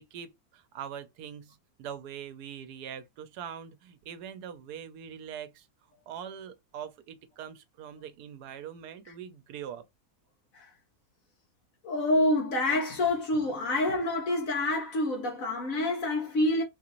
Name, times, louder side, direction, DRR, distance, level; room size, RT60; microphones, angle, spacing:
voice 1, 0.0-5.7 6.1-9.8, right 8 dB, 85° right, 1.2 m, -42 dB
voice 2, 11.8-16.6, left 1 dB, 65° left, 1.3 m, -27 dB
4.0 x 2.5 x 3.0 m
omnidirectional pair, 1.6 m